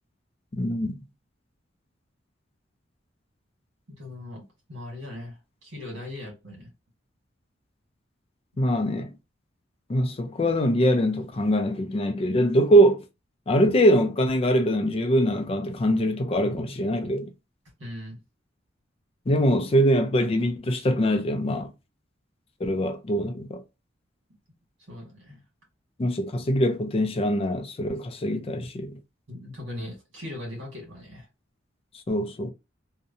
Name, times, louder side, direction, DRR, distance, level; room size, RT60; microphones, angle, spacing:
voice 1, 0.5-1.0 8.6-9.1 9.9-13.0 13.5-17.3 19.3-21.7 22.6-23.6 26.0-29.0 32.1-32.5, equal, 30° left, 0.4 m, -23 dB
voice 2, 3.9-4.4 4.7-6.7 17.8-18.2 24.9-25.4 29.3-31.2, left 1 dB, 85° right, 1.5 m, -39 dB
2.7 x 2.1 x 2.5 m
head